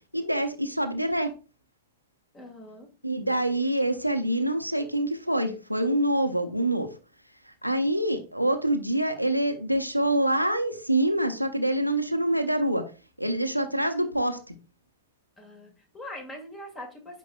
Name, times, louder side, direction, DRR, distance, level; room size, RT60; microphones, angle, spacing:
voice 1, 0.1-1.3 3.0-6.9 7.6-12.9 13.2-14.4, right 1 dB, 90° right, 6 dB, 0.9 m, -26 dB
voice 2, 2.3-2.9 15.4-17.2, left 1 dB, 20° left, 4 dB, 2.2 m, -42 dB
9.1 x 5.2 x 2.3 m, 0.32 s
figure-of-eight pair, 90°, 0 cm